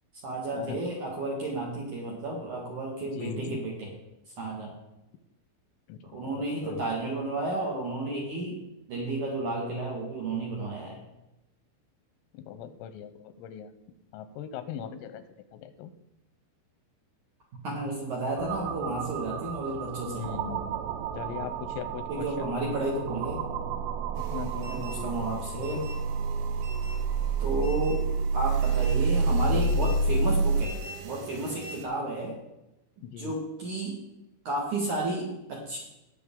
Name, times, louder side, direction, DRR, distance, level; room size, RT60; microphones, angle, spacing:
voice 1, 0.2-3.9 4.4-4.8 6.0-8.6 8.9-11.0 17.6-20.3 22.1-23.4 24.7-25.8 27.4-28.0 28.3-30.8 31.0-32.4 33.2-34.0 34.4-35.8, right 2 dB, 55° right, -2 dB, 2.3 m, -32 dB
voice 2, 3.2-3.6 5.9-6.8 12.4-13.7 14.1-15.2 15.5-15.9 20.1-20.8 21.2-22.5 24.3-25.2 33.0-33.3, left 8 dB, 85° left, 11 dB, 3.4 m, -39 dB
sound 1, 18.4-30.6, right 4 dB, 90° right, 2.6 m, -29 dB
sound 2, 24.1-31.8, right 4 dB, 75° right, 2.6 m, -43 dB
18.5 x 6.7 x 3.8 m, 0.92 s
omnidirectional pair, 5.8 m